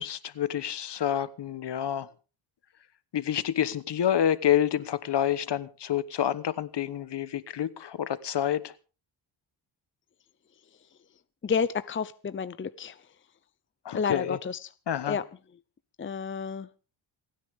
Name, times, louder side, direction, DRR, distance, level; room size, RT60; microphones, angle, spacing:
voice 1, 0.0-2.1 3.1-8.7 13.8-14.4 14.9-15.2, left 10 dB, 55° left, 1.2 m, -28 dB
voice 2, 11.4-13.0 13.9-14.7 15.1-15.2 16.0-16.7, left 6 dB, 25° left, 0.7 m, -30 dB
28.5 x 10.0 x 3.6 m
cardioid pair, 100°, 48 cm